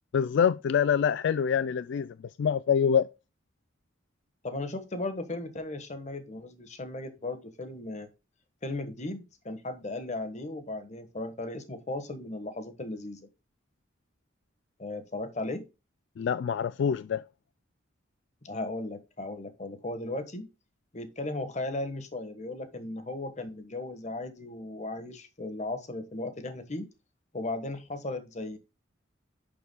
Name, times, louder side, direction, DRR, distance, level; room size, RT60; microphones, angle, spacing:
voice 1, 0.1-3.1 16.2-17.2, left 7 dB, 60° left, 0.3 m, -25 dB
voice 2, 4.4-8.1 8.6-13.3 14.8-15.6 18.4-20.5 20.9-26.9 27.3-28.6, left 2 dB, 35° left, 1.3 m, -36 dB
11.0 x 6.9 x 2.2 m
head